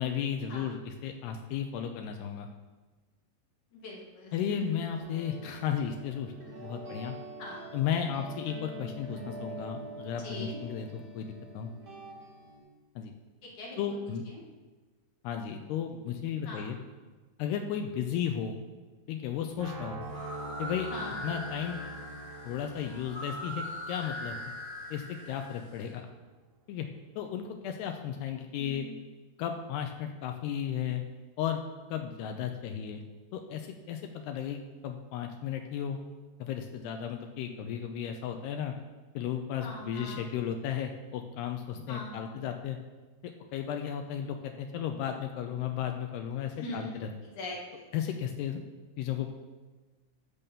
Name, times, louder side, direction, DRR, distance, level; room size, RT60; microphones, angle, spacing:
voice 1, 0.0-2.5 4.3-6.3 6.6-7.2 7.7-11.7 13.0-13.1 13.8-14.2 15.2-16.8 17.4-18.6 19.1-20.1 20.6-20.9 21.2-21.8 22.4-24.4 24.9-26.1 26.7-26.9 27.2-28.9 29.4-31.0 31.4-31.6 31.9-33.0 33.3-36.0 36.4-38.7 39.1-42.8 43.2-47.1 47.9-48.6 49.0-49.3, left 8 dB, 85° left, 5 dB, 2.4 m, -34 dB
voice 2, 3.7-4.7 7.4-7.7 10.2-10.6 13.4-13.8 16.4-16.7 20.9-21.4 28.6-29.0 39.6-40.2 41.9-42.4 46.5-47.0 47.4-47.9, left 2 dB, 50° left, -2 dB, 3.0 m, -42 dB
sound 1, 5.0-12.6, right 2 dB, 30° right, 2.0 m, -45 dB
sound 2, 19.6-25.5, right 2 dB, 55° right, 4.0 m, -44 dB
sound 3, 20.0-25.8, left 1 dB, 25° left, 1.2 m, -41 dB
14.0 x 5.5 x 7.1 m, 1.3 s
omnidirectional pair, 5.5 m